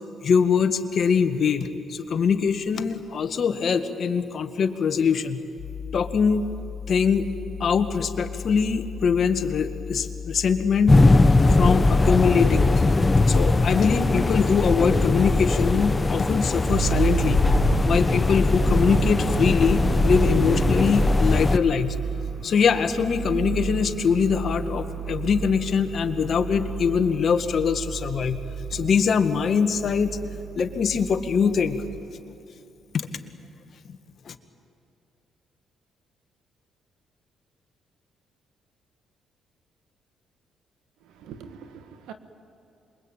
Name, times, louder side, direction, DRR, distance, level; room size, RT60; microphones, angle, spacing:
voice 1, 0.2-5.4 5.9-6.4 6.9-7.3 7.6-10.9 11.6-12.7 13.3-17.4 17.8-21.9 22.4-28.4 28.7-30.2 30.5-31.8 34.2-34.3, left 6 dB, 55° left, 7 dB, 1.8 m, -23 dB
sound 1, 5.6-14.1, left 6 dB, 80° left, 1.5 m, -36 dB
sound 2, 10.9-21.6, left 2 dB, 20° left, 0.9 m, -20 dB
sound 3, 16.7-32.0, right 6 dB, 60° right, 5.4 m, -31 dB
voice 2, 41.0-42.1, right 7 dB, 90° right, 9 dB, 1.7 m, -43 dB
27.0 x 23.0 x 9.0 m, 2.7 s
cardioid pair, 90°, 0 cm